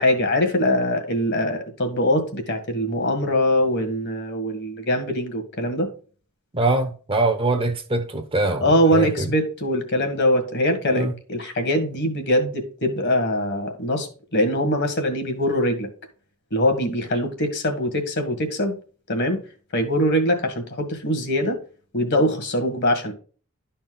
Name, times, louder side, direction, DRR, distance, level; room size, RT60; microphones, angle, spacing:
voice 1, 0.0-5.9 8.6-15.9 16.5-18.8 19.1-19.4 19.7-21.6 21.9-23.1, equal, 50° left, 1.8 m, -22 dB
voice 2, 6.5-9.3 10.9-11.1, right 2 dB, 25° right, 1.0 m, -23 dB
11.5 x 4.4 x 3.8 m
head